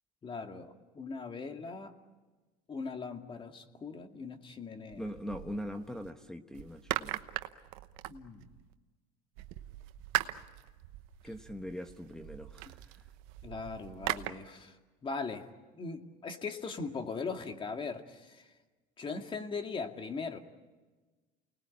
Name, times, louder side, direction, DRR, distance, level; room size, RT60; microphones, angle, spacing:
voice 1, 0.2-1.9 2.7-5.1 8.1-8.5 13.4-14.8 15.0-15.4 15.7-18.5 19.0-20.4, left 4 dB, 25° left, 5 dB, 2.3 m, -40 dB
sound 1, 4.9-6.1 6.5-8.7 9.4-14.3, right 17 dB, 85° right, 1.1 m, -40 dB
voice 2, 5.0-7.2 11.2-13.0, equal, 5° left, 4 dB, 1.1 m, -41 dB
29.0 x 20.0 x 8.6 m, 1.3 s
supercardioid pair, 115°, 19 cm